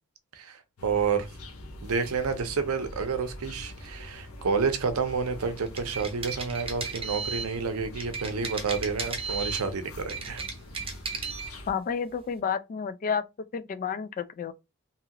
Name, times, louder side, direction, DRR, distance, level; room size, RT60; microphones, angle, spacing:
voice 1, 0.3-1.3 1.8-10.4, right 5 dB, 75° right, 0.6 m, -29 dB
sound 1, 0.8-11.7, left 1 dB, 80° left, 0.8 m, -43 dB
sound 2, 5.6-7.5 8.0-9.7 10.0-11.5, right 5 dB, 25° right, 0.7 m, -35 dB
voice 2, 11.7-13.2 13.5-14.5, left 6 dB, 40° left, 0.3 m, -30 dB
2.9 x 2.4 x 2.8 m
head